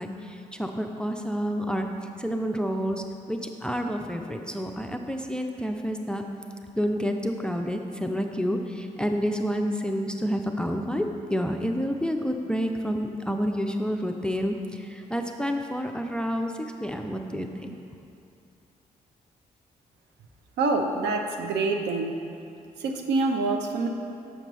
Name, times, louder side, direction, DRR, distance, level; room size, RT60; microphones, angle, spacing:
voice 1, 0.0-1.9 2.2-6.2 6.8-17.8, equal, 5° left, 4 dB, 0.4 m, -29 dB
voice 2, 20.6-22.1 22.8-23.9, right 3 dB, 60° right, 4 dB, 0.6 m, -26 dB
6.6 x 6.2 x 3.0 m, 2.6 s
figure-of-eight pair, 40°, 20 cm